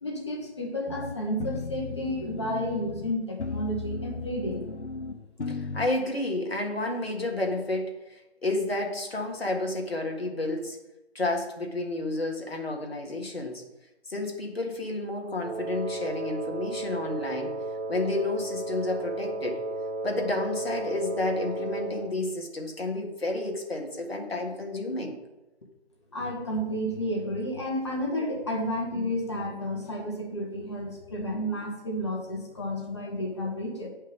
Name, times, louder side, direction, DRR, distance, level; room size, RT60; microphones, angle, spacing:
voice 1, 0.0-4.6 26.1-33.9, equal, 25° left, -1 dB, 1.3 m, -31 dB
sound 1, 0.9-5.9, left 4 dB, 90° left, 0.7 m, -36 dB
voice 2, 5.5-10.8 11.2-13.6 14.1-17.6 17.9-19.6 20.0-25.2, left 2 dB, 60° left, 2 dB, 1.8 m, -31 dB
Wind instrument woodwind instrument, 15.4-22.2, right 2 dB, 85° right, 1.4 m, -34 dB
8.3 x 5.5 x 5.1 m, 1.0 s
figure-of-eight pair, 160°, 33 cm